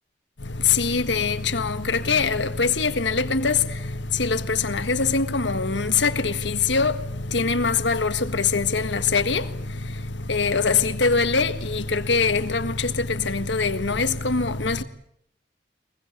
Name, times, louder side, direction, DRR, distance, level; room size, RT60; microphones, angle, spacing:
voice 1, 0.4-14.8, left 4 dB, 80° left, 1.6 m, -23 dB
23.5 x 21.5 x 9.8 m
head